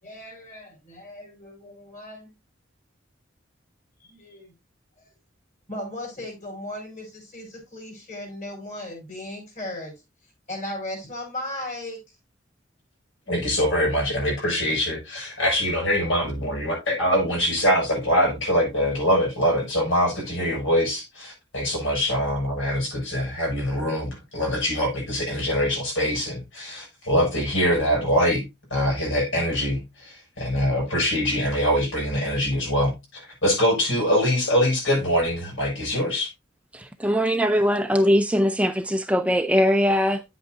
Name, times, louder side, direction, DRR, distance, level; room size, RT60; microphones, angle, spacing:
voice 1, 0.0-2.3 4.0-4.5 5.7-9.9 10.5-12.0, left 1 dB, 40° left, 4.7 m, -36 dB
voice 2, 13.3-36.3, equal, 80° left, 6.5 m, -24 dB
voice 3, 36.7-40.2, equal, 5° right, 0.5 m, -21 dB
10.0 x 8.1 x 2.6 m
head